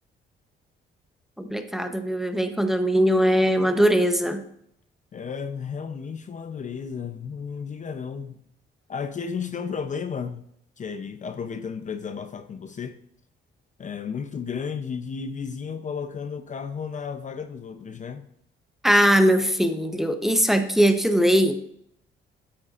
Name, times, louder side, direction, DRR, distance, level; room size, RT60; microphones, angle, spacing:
voice 1, 1.4-4.4 18.8-21.5, equal, ahead, 0.8 m, -20 dB
voice 2, 5.1-8.5 8.9-10.5 10.8-13.0 13.8-18.2, left 6 dB, 40° left, 0.6 m, -33 dB
8.7 x 8.7 x 2.5 m
cardioid pair, 90°, 20 cm